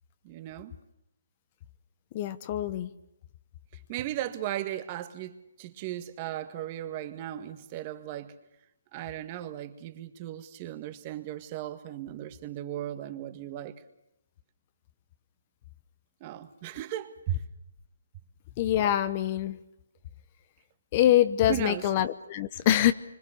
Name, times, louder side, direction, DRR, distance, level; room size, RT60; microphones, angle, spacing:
voice 1, 0.2-0.7 3.7-8.3 8.9-13.8 16.2-17.4 21.0-21.2 21.5-21.9, right 13 dB, 25° right, 1.7 m, -36 dB
voice 2, 2.1-2.9 18.6-19.6 20.9-22.9, left 12 dB, 30° left, 0.9 m, -24 dB
26.0 x 25.5 x 6.7 m
hypercardioid pair, 160°, 0 cm